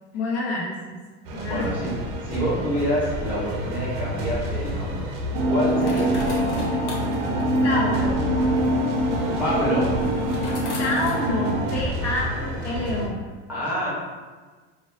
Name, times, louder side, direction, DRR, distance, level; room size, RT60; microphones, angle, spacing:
voice 1, 0.1-1.0 1.3-1.7 5.8-6.1 7.6-8.2 10.8-13.2, left 2 dB, 45° left, -5 dB, 1.0 m, -28 dB
sound 1, 1.2-13.1, equal, 90° right, 0.8 m, -31 dB
voice 2, 1.4-1.9 2.2-5.1 5.4-6.7 9.4-10.0 13.5-13.9, equal, 5° right, -8 dB, 0.8 m, -27 dB
sound 2, 4.3-12.0, left 2 dB, 90° left, 1.0 m, -43 dB
sound 3, 5.3-11.7, right 1 dB, 50° right, 0.6 m, -24 dB
4.1 x 2.4 x 3.3 m, 1.4 s
supercardioid pair, 150°, 35 cm